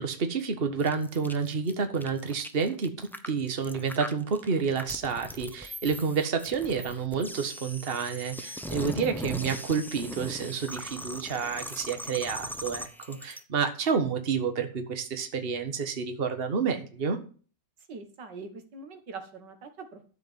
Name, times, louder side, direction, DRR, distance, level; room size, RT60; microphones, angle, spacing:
voice 1, 0.0-17.2, right 5 dB, 35° right, 7 dB, 1.6 m, -29 dB
sound 1, 0.8-13.4, equal, ahead, 0.5 m, -40 dB
voice 2, 17.9-20.1, right 4 dB, 80° right, 7 dB, 2.3 m, -43 dB
12.5 x 5.1 x 8.0 m, 0.39 s
omnidirectional pair, 1.9 m